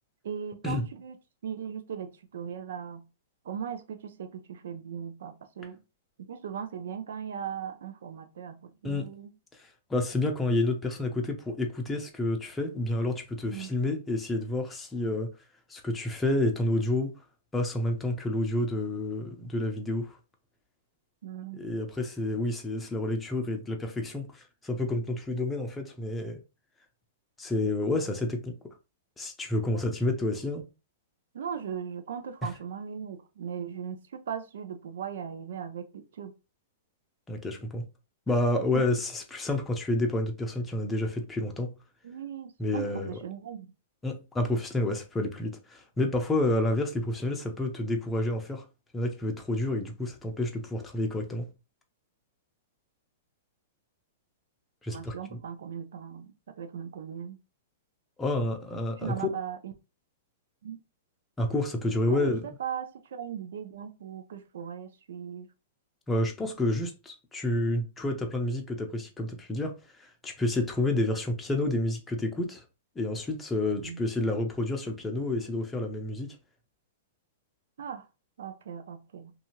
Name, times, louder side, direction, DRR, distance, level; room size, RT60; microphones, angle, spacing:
voice 1, 0.2-1.2 1.4-3.0 3.4-5.8 6.2-9.3 13.5-13.7 21.2-21.6 29.7-29.8 31.3-36.3 38.7-38.8 42.0-43.7 54.9-57.4 59.0-59.7 60.6-60.8 62.1-65.5 73.8-74.0 77.8-78.0 78.4-79.3, right 8 dB, 75° right, 0.5 m, -38 dB
voice 2, 9.9-15.3 15.7-17.1 17.5-20.2 21.5-26.4 27.4-28.5 29.2-30.6 32.4-32.5 37.3-37.9 38.3-41.7 42.6-43.1 44.0-48.6 48.9-51.5 54.8-55.1 58.2-59.3 61.4-62.5 66.1-69.7 70.0-72.6 73.0-76.3, left 1 dB, 10° left, 0.6 m, -29 dB
2.7 x 2.4 x 2.9 m
hypercardioid pair, 135°, 0 cm